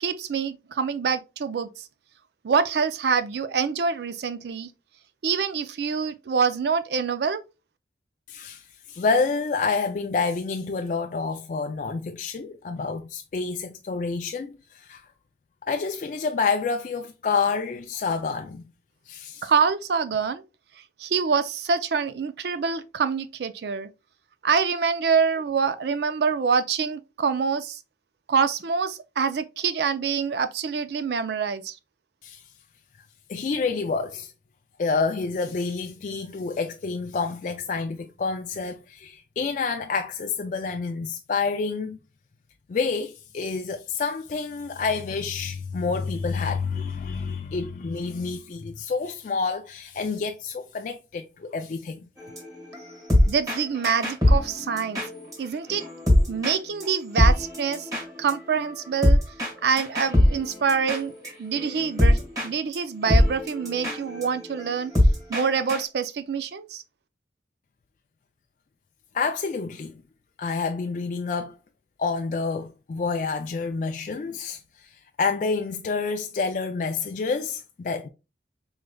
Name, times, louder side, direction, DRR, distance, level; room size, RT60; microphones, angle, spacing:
voice 1, 0.0-1.9 2.4-4.7 5.2-7.4 19.4-20.4 21.0-23.9 24.4-27.8 28.3-31.8 53.3-55.0 55.4-55.8 56.3-57.9 58.2-59.2 59.6-61.1 61.4-64.9 65.3-66.8, right 6 dB, 65° right, 0.4 m, -25 dB
voice 2, 8.3-8.6 8.9-15.0 15.7-18.6 19.1-19.5 32.2-32.4 33.3-34.3 34.8-42.0 42.7-52.1 69.1-70.0 70.4-71.5 72.0-74.6 75.2-78.1, left 4 dB, 45° left, 0.3 m, -28 dB
sound 1, 52.2-55.4 55.7-56.6 56.8-56.9 57.2-62.5 62.7-62.8 63.1-65.8, left 1 dB, 20° right, 1.4 m, -23 dB
4.7 x 3.1 x 2.2 m
head